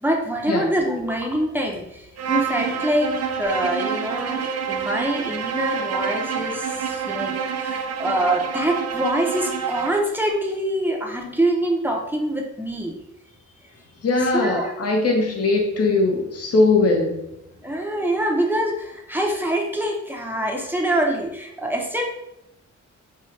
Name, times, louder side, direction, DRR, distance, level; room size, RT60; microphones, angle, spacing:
voice 1, 0.0-12.9 14.3-14.7 17.6-22.0, right 1 dB, 5° right, 0 dB, 0.7 m, -25 dB
Bowed string instrument, 2.2-10.1, right 6 dB, 55° right, 0.5 m, -27 dB
voice 2, 14.0-17.1, left 3 dB, 50° left, 1 dB, 0.9 m, -20 dB
5.5 x 2.3 x 3.2 m, 0.86 s
wide cardioid pair, 110°, 30 cm